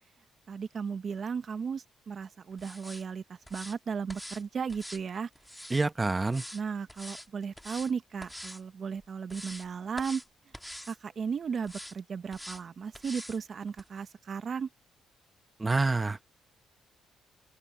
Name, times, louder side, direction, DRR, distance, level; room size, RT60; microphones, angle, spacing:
voice 1, 0.5-5.3 6.5-10.2 10.9-14.7, right 6 dB, 50° right, 1.1 m, -35 dB
sound 1, 2.6-3.0 3.5-3.8 4.1-4.4 4.7-5.8 6.3-6.6 6.9-7.3 7.6-7.9 8.2-8.6 9.0-9.7 10.0-10.3 10.5-11.0 11.6-11.9 12.3-12.6 12.9-13.4 13.8-13.9, equal, 5° left, 2.0 m, -44 dB
voice 2, 5.7-6.4 15.6-16.2, right 3 dB, 20° right, 1.2 m, -27 dB
open air
cardioid pair, 90°, 0 cm